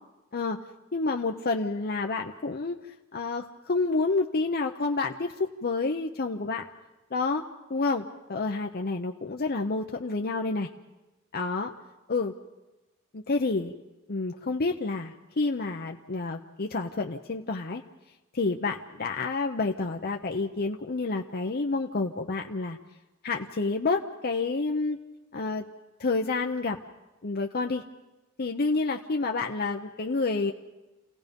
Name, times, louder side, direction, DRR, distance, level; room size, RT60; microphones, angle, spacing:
voice 1, 0.9-2.8 3.1-6.6 7.1-10.7 11.3-11.7 12.1-12.3 13.1-13.7 14.1-17.8 18.3-22.8 23.2-25.0 25.3-25.6 26.0-26.8 27.2-27.8 28.4-30.5, left 3 dB, 45° left, 3 dB, 0.8 m, -29 dB
29.5 x 17.0 x 5.3 m, 1.0 s
head